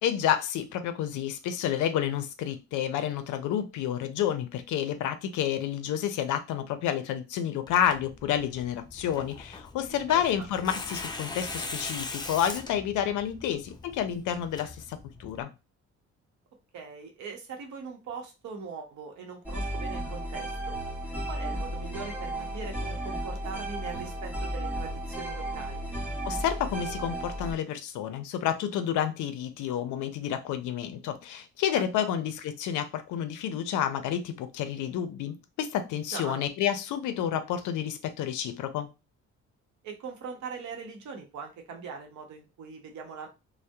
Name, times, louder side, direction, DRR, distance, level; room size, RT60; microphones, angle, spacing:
voice 1, 0.0-15.5 26.2-38.9, left 10 dB, 85° left, 0.5 m, -30 dB
Tearing, 7.7-15.4, left 3 dB, 15° left, 0.3 m, -41 dB
voice 2, 9.9-10.5 16.7-20.8 21.3-25.8 31.7-32.1 36.1-36.4 39.8-43.3, right 5 dB, 70° right, 0.8 m, -41 dB
sound 1, 19.4-27.5, right 1 dB, 5° right, 1.0 m, -34 dB
2.7 x 2.0 x 2.2 m
cardioid pair, 90°, 30 cm